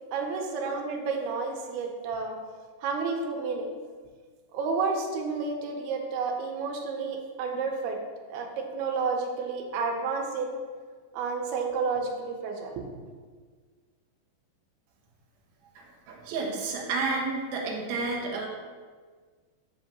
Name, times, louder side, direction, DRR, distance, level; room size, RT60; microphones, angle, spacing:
voice 1, 0.0-2.3 2.8-3.8 4.5-8.0 8.3-10.5 11.1-12.9, right 4 dB, 90° right, 2 dB, 2.7 m, -31 dB
voice 2, 15.8-18.5, right 3 dB, 65° right, -2 dB, 1.9 m, -31 dB
7.7 x 2.8 x 6.0 m, 1.5 s
omnidirectional pair, 4.3 m